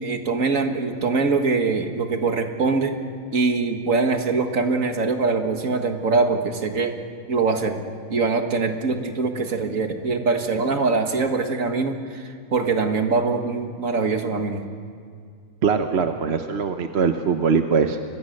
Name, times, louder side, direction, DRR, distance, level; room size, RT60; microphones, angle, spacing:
voice 1, 0.0-2.9 3.3-7.0 7.3-7.8 8.1-14.7, right 4 dB, 75° right, 5 dB, 2.1 m, -23 dB
voice 2, 15.6-18.0, right 5 dB, 55° right, 7 dB, 1.1 m, -21 dB
27.0 x 22.0 x 6.6 m, 2.2 s
omnidirectional pair, 1.4 m